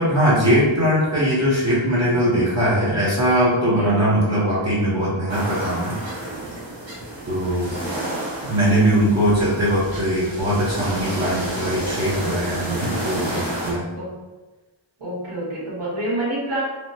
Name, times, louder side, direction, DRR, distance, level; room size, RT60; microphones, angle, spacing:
voice 1, 0.0-6.0 7.2-7.7 8.5-13.8, equal, 35° right, -9 dB, 0.8 m, -20 dB
sound 1, 5.3-13.7, right 1 dB, 65° right, 1.0 m, -30 dB
voice 2, 15.0-16.6, right 1 dB, 85° right, -9 dB, 1.3 m, -27 dB
3.2 x 2.0 x 2.7 m, 1.2 s
wide cardioid pair, 60°, 48 cm